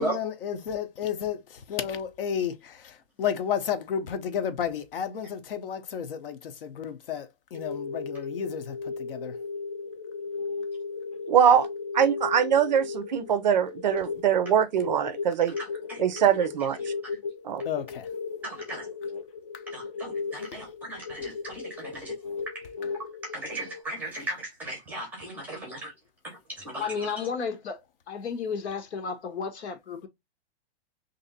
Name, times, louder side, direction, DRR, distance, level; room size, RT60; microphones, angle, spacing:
voice 1, 0.0-9.4 17.6-18.1, left 8 dB, 55° left, 0.7 m, -32 dB
sound 1, 7.5-23.8, left 4 dB, 30° left, 0.4 m, -36 dB
voice 2, 11.3-11.7 11.9-15.6 16.0-16.8 17.4-17.6, right 8 dB, 45° right, 0.4 m, -22 dB
voice 3, 15.6-16.0 18.4-18.9 19.7-22.1 22.5-22.7 22.9-25.9 26.2-26.4 26.6-27.3, right 1 dB, 5° right, 0.7 m, -37 dB
voice 4, 26.7-30.1, left 5 dB, 85° left, 1.2 m, -33 dB
3.1 x 2.7 x 3.8 m
hypercardioid pair, 175°, 32 cm